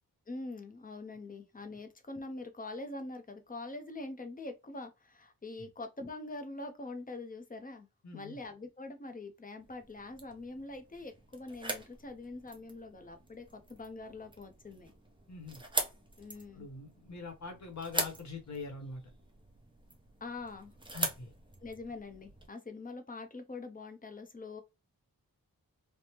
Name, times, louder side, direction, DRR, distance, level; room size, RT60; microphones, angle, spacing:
voice 1, 0.3-7.9 8.1-14.9 16.2-16.7 20.2-20.7 21.6-24.6, left 2 dB, 25° left, 0.6 m, -44 dB
voice 2, 8.0-8.4 15.3-15.6 16.5-19.0 20.9-21.3, left 4 dB, 50° left, 1.0 m, -43 dB
sound 1, 9.6-22.5, right 2 dB, 15° right, 0.6 m, -42 dB
3.4 x 2.0 x 2.8 m
wide cardioid pair, 145°, 37 cm